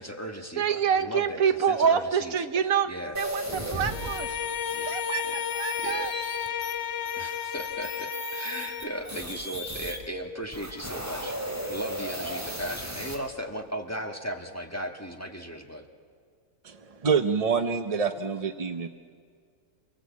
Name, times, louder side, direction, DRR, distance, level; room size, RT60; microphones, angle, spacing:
voice 1, 0.0-2.4 2.9-3.2 3.7-3.9 4.7-5.0 5.2-6.1 7.2-15.8, equal, 10° left, 2 dB, 1.5 m, -37 dB
voice 2, 0.6-2.9 3.2-4.4 4.9-6.1, right 7 dB, 80° right, 10 dB, 1.4 m, -26 dB
sound 1, 3.1-10.0 10.4-13.1, equal, 10° right, 3.2 m, -37 dB
Bowed string instrument, 3.9-9.1, left 9 dB, 55° left, 1.1 m, -33 dB
voice 3, 16.6-18.9, right 5 dB, 40° right, 8 dB, 0.6 m, -26 dB
28.0 x 18.5 x 8.4 m, 2.1 s
omnidirectional pair, 1.5 m